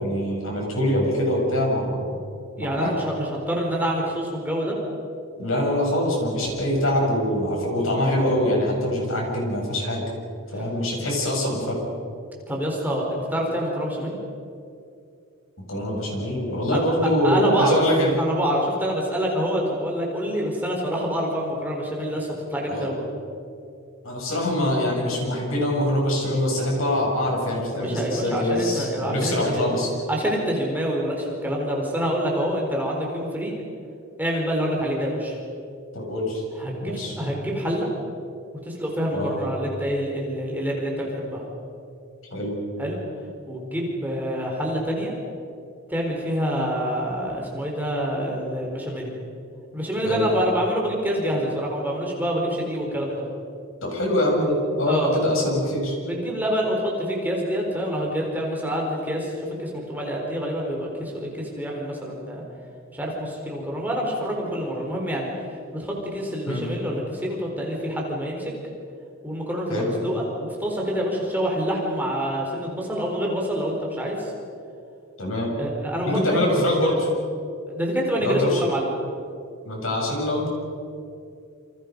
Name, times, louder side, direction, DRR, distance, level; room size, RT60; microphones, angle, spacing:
voice 1, 0.0-2.1 2.6-2.9 5.4-10.0 10.5-11.8 15.7-18.2 22.7-22.9 24.0-29.9 35.9-36.4 36.8-37.2 39.1-39.4 42.3-42.5 50.0-50.3 53.8-55.9 66.5-66.6 69.7-69.9 75.2-75.5 76.1-77.1 78.2-78.6 79.6-80.5, left 1 dB, 70° left, -1 dB, 7.9 m, -24 dB
voice 2, 2.6-4.7 10.5-10.6 12.5-14.2 16.7-16.8 17.2-17.8 18.2-23.1 27.7-29.6 30.1-33.5 34.2-35.4 36.6-37.9 38.7-41.4 42.8-43.0 43.5-45.1 45.9-49.1 49.7-53.2 54.8-55.2 56.0-62.4 62.9-65.3 65.7-68.5 69.2-74.3 75.6-76.4 76.9-77.1 77.7-78.9, equal, 10° right, -2 dB, 4.3 m, -27 dB
28.5 x 26.5 x 5.4 m, 2.5 s
head